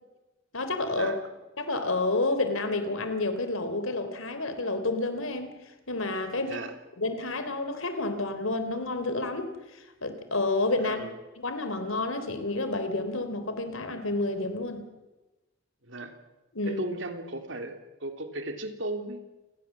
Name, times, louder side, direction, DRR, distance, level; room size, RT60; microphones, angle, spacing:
voice 1, 0.5-1.1 1.6-5.5 5.9-6.6 7.0-11.0 11.4-14.8 16.5-16.8, left 2 dB, 75° left, 9 dB, 3.4 m, -30 dB
voice 2, 6.4-6.7 10.8-11.2 15.8-16.2 16.6-19.2, right 2 dB, 60° right, 6 dB, 3.1 m, -36 dB
29.0 x 20.0 x 7.4 m, 1.1 s
head